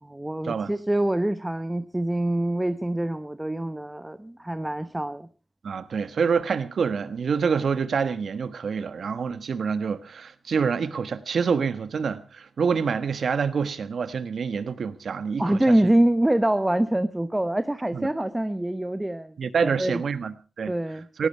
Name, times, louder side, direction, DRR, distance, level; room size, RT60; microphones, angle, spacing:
voice 1, 0.0-5.3 15.4-20.0 20.7-21.1, right 1 dB, 15° right, 0.8 m, -25 dB
voice 2, 5.6-15.9 17.9-18.1 19.4-20.7 21.2-21.3, right 6 dB, 75° right, 1.3 m, -27 dB
18.0 x 16.0 x 4.5 m
cardioid pair, 70°, 0 cm